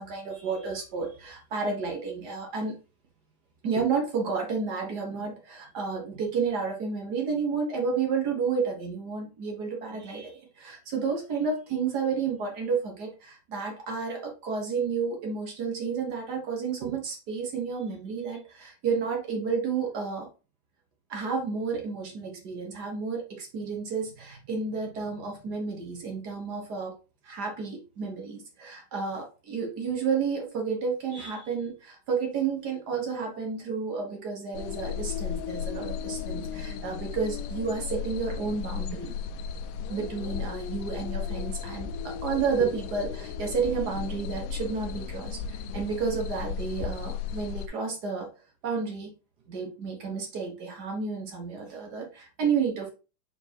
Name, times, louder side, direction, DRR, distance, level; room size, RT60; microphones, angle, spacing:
voice 1, 0.0-2.8 3.6-20.3 21.1-27.0 27.2-39.1 39.9-48.3 48.6-49.1 49.5-52.9, right 5 dB, 75° right, 1 dB, 0.9 m, -31 dB
sound 1, 34.5-47.7, left 7 dB, 80° left, 2.1 m, -35 dB
7.7 x 4.7 x 2.9 m, 0.32 s
omnidirectional pair, 3.9 m